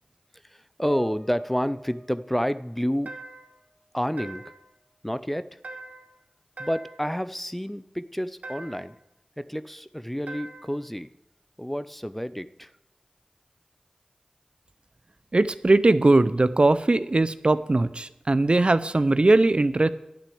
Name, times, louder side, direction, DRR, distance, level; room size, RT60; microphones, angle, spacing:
voice 1, 0.4-3.1 3.9-4.4 5.0-5.6 6.6-9.0 9.4-11.1 11.6-12.7, equal, 5° left, 13 dB, 0.4 m, -29 dB
sound 1, 0.8-4.2 4.6-5.7, right 1 dB, 15° right, 1.3 m, -48 dB
sound 2, 3.1-3.6 4.2-4.7 5.6-6.2 6.6-7.1 8.4-9.0 10.3-10.8, right 2 dB, 80° right, 1.1 m, -42 dB
voice 2, 15.3-19.9, right 2 dB, 50° right, 14 dB, 0.5 m, -20 dB
11.5 x 6.1 x 8.6 m, 0.92 s
wide cardioid pair, 55°, 2 cm